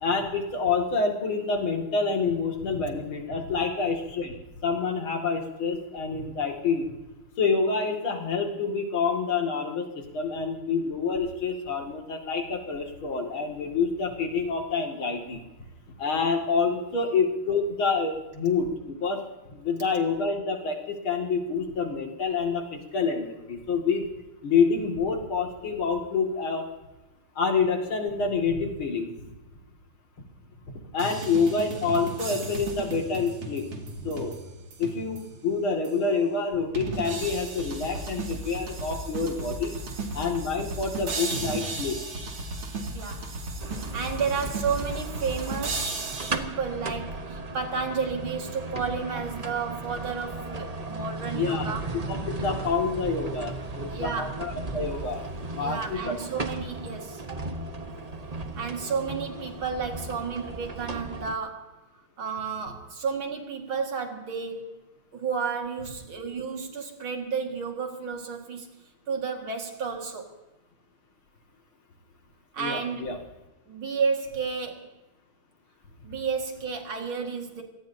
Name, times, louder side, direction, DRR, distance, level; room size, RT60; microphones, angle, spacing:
voice 1, 0.0-4.4 4.6-6.9 7.4-15.4 16.0-19.2 19.5-24.0 24.4-26.7 27.4-29.1 30.9-34.4 34.8-39.7 40.1-42.0 51.3-51.7 52.1-55.2 55.5-56.1 72.6-73.2, left 4 dB, 70° left, 2 dB, 3.1 m, -27 dB
sound 1, 31.0-35.4 35.9-36.0 36.8-46.4, right 3 dB, 85° right, 3.3 m, -35 dB
voice 2, 42.9-43.3 43.9-51.8 53.9-54.4 55.6-57.4 58.6-61.7 62.2-64.9 65.1-68.7 69.1-70.3 72.5-73.2 73.7-74.9 76.0-77.6, right 5 dB, 70° right, 3 dB, 2.8 m, -32 dB
sound 2, 43.6-61.3, right 2 dB, 30° right, 0.7 m, -36 dB
26.0 x 18.0 x 2.8 m, 1.0 s
omnidirectional pair, 2.3 m